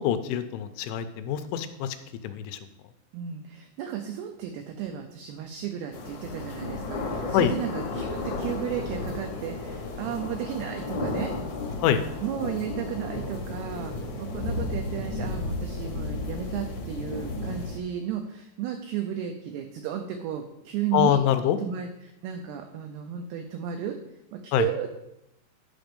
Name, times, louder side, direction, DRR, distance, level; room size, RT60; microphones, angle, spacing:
voice 1, 0.0-2.0 2.2-2.6 7.3-7.5 11.8-12.0 20.9-21.6 24.5-24.7, left 10 dB, 85° left, 9 dB, 3.0 m, -24 dB
voice 2, 3.1-11.3 12.2-21.2 21.6-24.0 24.3-25.0, right 9 dB, 90° right, 5 dB, 2.3 m, -34 dB
sound 1, 5.9-17.8, left 2 dB, 70° left, 1.8 m, -33 dB
10.5 x 5.2 x 5.2 m, 0.84 s
omnidirectional pair, 5.5 m